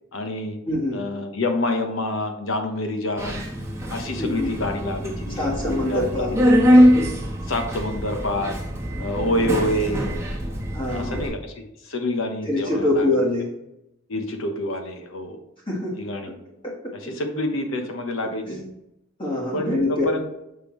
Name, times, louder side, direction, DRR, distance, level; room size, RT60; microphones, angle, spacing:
voice 1, 0.1-0.6 0.9-3.4 3.9-6.4 7.5-8.6 9.0-10.0 10.9-11.5 11.8-13.1 14.1-15.4 16.0-16.3 17.0-18.6 19.5-20.3, left 1 dB, 65° left, 5 dB, 1.0 m, -27 dB
voice 2, 0.6-1.0 4.2-4.5 5.4-6.3 9.4-9.7 10.7-11.2 12.4-13.5 15.7-16.0 16.3-16.4 16.6-16.7 18.5-18.7 19.2-20.0, left 1 dB, 25° left, -4 dB, 1.4 m, -24 dB
Subway metro underground, 3.2-11.3, equal, 15° right, 1.1 m, -22 dB
6.6 x 5.3 x 3.1 m, 0.87 s
head